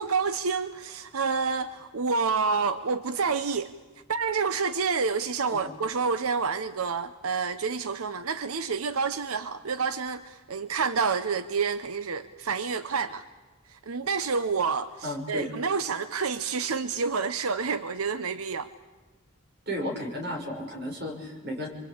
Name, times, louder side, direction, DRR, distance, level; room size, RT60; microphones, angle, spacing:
voice 1, 0.0-3.7 4.1-13.2 13.7-18.7, right 5 dB, 90° right, 0.8 m, -28 dB
voice 2, 15.0-15.5 19.7-21.7, left 1 dB, 50° right, 5.9 m, -33 dB
27.5 x 24.5 x 8.7 m
head